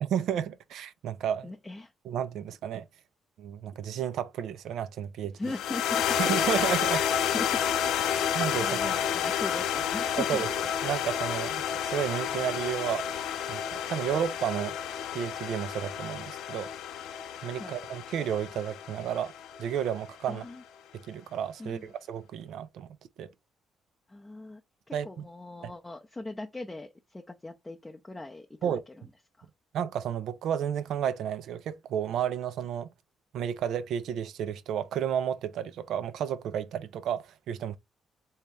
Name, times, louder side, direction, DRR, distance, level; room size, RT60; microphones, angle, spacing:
voice 1, 0.0-1.5 2.0-2.8 3.4-5.4 6.2-7.0 8.3-8.7 10.3-10.5 10.8-13.2 13.5-14.8 15.1-16.7 17.4-19.3 19.6-20.4 20.9-22.9 23.2-23.3 24.9-25.1 28.6-28.8 29.7-32.9 33.3-37.8, right 9 dB, 75° right, 0.4 m, -32 dB
voice 2, 1.4-1.9 5.3-6.2 6.9-7.6 8.0-10.4 17.6-17.7 20.3-20.6 21.6-21.9 24.1-24.6 24.9-29.1 29.4-29.5, left 2 dB, 15° left, 0.5 m, -40 dB
sound 1, 5.5-19.9, left 9 dB, 90° left, 0.4 m, -30 dB
3.4 x 2.8 x 3.1 m
cardioid pair, 90°, 0 cm